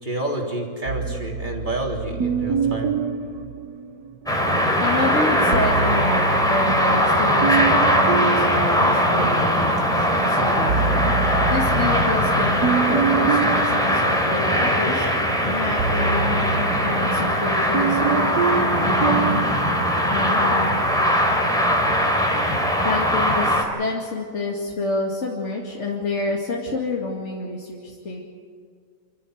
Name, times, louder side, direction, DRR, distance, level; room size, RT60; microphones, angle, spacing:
voice 1, 0.0-2.9, right 1 dB, 30° right, -1 dB, 3.6 m, -29 dB
sound 1, 0.9-4.4 5.3-9.8 10.2-19.5, right 6 dB, 80° right, 1.6 m, -27 dB
sound 2, 4.3-23.6, equal, ahead, 3.3 m, -20 dB
voice 2, 4.8-15.1 15.4-19.4 20.1-20.8 22.8-28.2, left 2 dB, 50° left, -3 dB, 2.7 m, -28 dB
28.0 x 14.0 x 8.0 m, 2.1 s
omnidirectional pair, 1.6 m